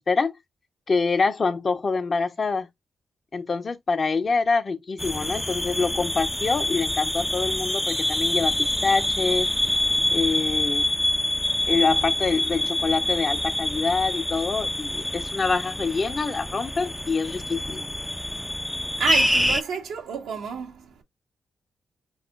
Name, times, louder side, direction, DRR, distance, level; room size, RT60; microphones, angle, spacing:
voice 1, 0.9-2.7 3.3-8.5 8.8-9.5 10.1-10.9 11.7-17.8, left 4 dB, 50° left, 0.9 m, -25 dB
sound 1, 5.0-19.6, left 1 dB, 10° left, 0.5 m, -26 dB
voice 2, 18.9-21.0, right 6 dB, 80° right, 1.3 m, -30 dB
4.4 x 4.2 x 2.5 m
supercardioid pair, 45°, 0 cm